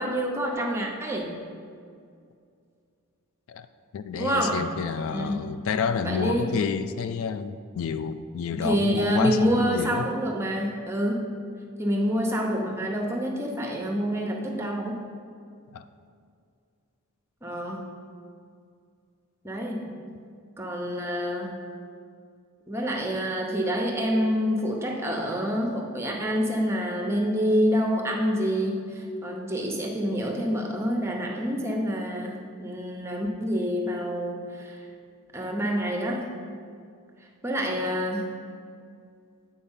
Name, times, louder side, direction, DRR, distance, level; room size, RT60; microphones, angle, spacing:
voice 1, 0.0-1.3 4.1-4.7 5.1-5.5 6.0-6.5 8.5-11.3 11.8-15.0 17.4-17.8 19.4-19.9 20.6-21.6 22.7-34.9 35.3-36.3 37.4-38.3, equal, 10° right, 1 dB, 0.8 m, -27 dB
voice 2, 3.9-10.1 15.7-15.9, left 6 dB, 65° left, 11 dB, 0.3 m, -29 dB
8.5 x 4.4 x 5.6 m, 2.3 s
head